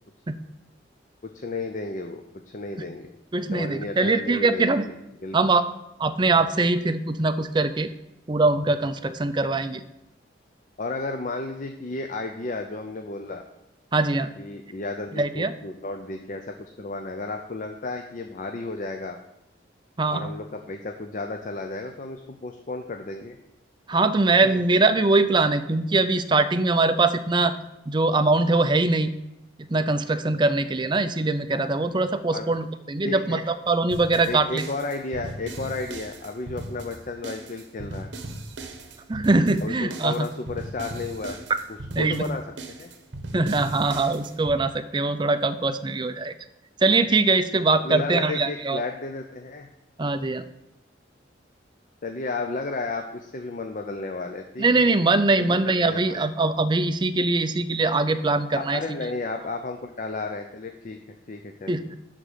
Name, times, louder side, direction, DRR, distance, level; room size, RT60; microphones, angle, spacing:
voice 1, 1.3-3.1 3.5-4.9 5.2-5.6 10.8-13.4 14.4-19.2 20.1-23.4 24.4-24.6 32.3-32.5 33.0-33.4 34.3-38.1 39.6-41.4 42.0-42.9 47.8-49.7 52.0-54.7 55.4-56.2 58.5-61.0 61.3-61.8, left 3 dB, 40° left, 5 dB, 0.6 m, -33 dB
voice 2, 3.3-4.8 5.3-5.6 6.0-7.9 8.3-9.8 13.9-14.3 15.1-15.5 20.0-20.3 23.9-27.5 27.9-29.1 29.6-34.7 39.1-40.3 42.0-42.3 43.3-46.3 46.8-48.8 50.0-50.4 54.6-58.8 61.7-61.8, right 3 dB, 25° right, 9 dB, 0.4 m, -22 dB
sound 1, 33.9-44.6, right 2 dB, 65° right, 1.0 m, -38 dB
11.0 x 3.8 x 6.8 m, 0.87 s
head